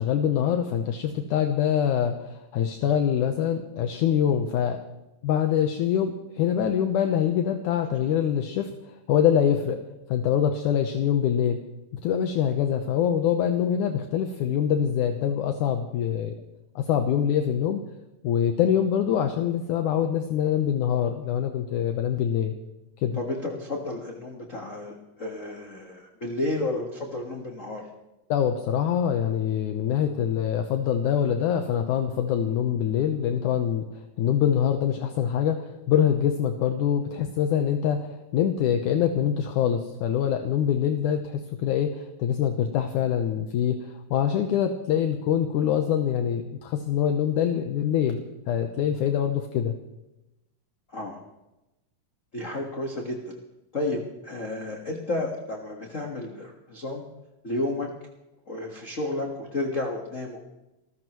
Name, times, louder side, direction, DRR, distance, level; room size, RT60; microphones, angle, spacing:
voice 1, 0.0-4.8 5.2-8.7 9.1-9.8 10.1-11.6 12.0-16.3 16.8-17.8 18.2-22.6 23.0-23.2 28.3-33.9 34.2-49.8, left 9 dB, 75° left, 5 dB, 2.2 m, -24 dB
voice 2, 23.2-27.8 50.9-51.2 52.3-53.2 53.7-57.0 57.4-57.9 58.5-60.4, left 2 dB, 45° left, 1 dB, 0.9 m, -31 dB
28.5 x 14.5 x 3.1 m, 0.97 s
omnidirectional pair, 4.0 m